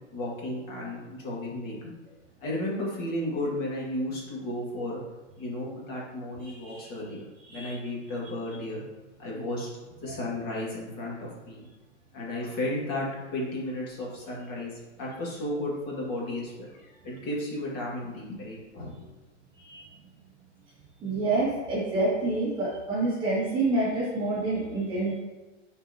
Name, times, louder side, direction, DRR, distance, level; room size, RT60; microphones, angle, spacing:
voice 1, 0.1-1.8 2.4-5.0 5.4-7.2 7.5-8.8 9.2-11.7 12.1-19.1, left 1 dB, 25° left, -4 dB, 1.9 m, -34 dB
voice 2, 6.4-6.9 7.5-7.7 10.1-10.2 19.6-19.9 21.0-25.2, right 2 dB, 15° right, -7 dB, 1.6 m, -28 dB
9.8 x 4.5 x 2.8 m, 1.1 s
hypercardioid pair, 155°, 37 cm